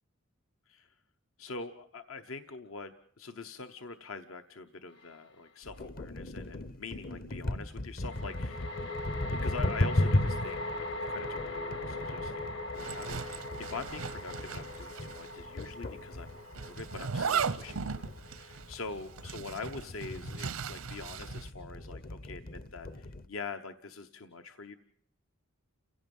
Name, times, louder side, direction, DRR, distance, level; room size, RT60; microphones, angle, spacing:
voice 1, 1.4-24.7, left 4 dB, 75° left, 8 dB, 1.0 m, -44 dB
sound 1, 5.0-5.1 8.0-19.4, left 2 dB, 60° left, 1.6 m, -41 dB
sound 2, 5.6-23.3, left 1 dB, 45° left, 0.8 m, -36 dB
Zipper (clothing), 12.7-15.3 15.6-15.7 16.5-21.5, right 6 dB, 85° right, 0.8 m, -37 dB
30.0 x 17.0 x 5.4 m, 0.65 s
head